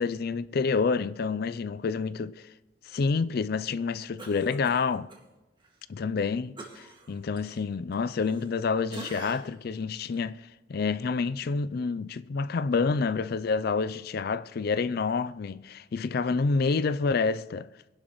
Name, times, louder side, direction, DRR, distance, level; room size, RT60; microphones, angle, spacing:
voice 1, 0.0-2.5 2.8-5.1 5.9-17.7, left 4 dB, 50° left, 0.4 m, -28 dB
Cough, 4.2-5.2 5.6-5.8 6.6-8.6 8.9-9.6 10.1-10.3, right 2 dB, 25° right, 2.0 m, -45 dB
23.0 x 11.5 x 3.1 m
head